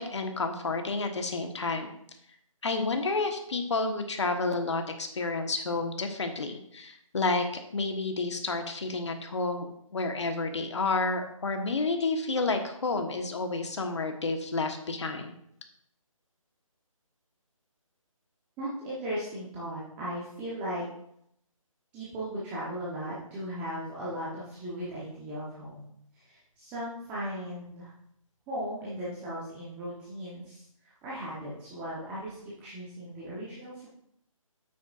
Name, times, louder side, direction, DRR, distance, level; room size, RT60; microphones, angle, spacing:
voice 1, 0.0-1.9 2.6-7.4 7.7-9.7 9.9-15.3, left 3 dB, 55° left, 5 dB, 1.3 m, -30 dB
voice 2, 18.6-20.8 21.9-27.9 28.5-33.9, equal, 10° right, -8 dB, 1.0 m, -37 dB
9.3 x 8.6 x 2.5 m, 0.72 s
figure-of-eight pair, 165°, 18 cm